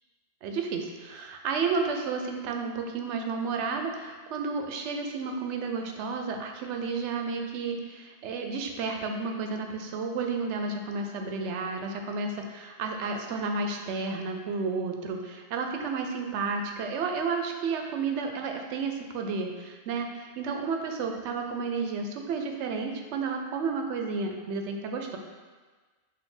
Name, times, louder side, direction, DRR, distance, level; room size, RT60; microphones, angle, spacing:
voice 1, 0.4-25.2, right 4 dB, 90° right, 3 dB, 0.9 m, -32 dB
4.2 x 2.6 x 4.8 m, 1.4 s
omnidirectional pair, 1.1 m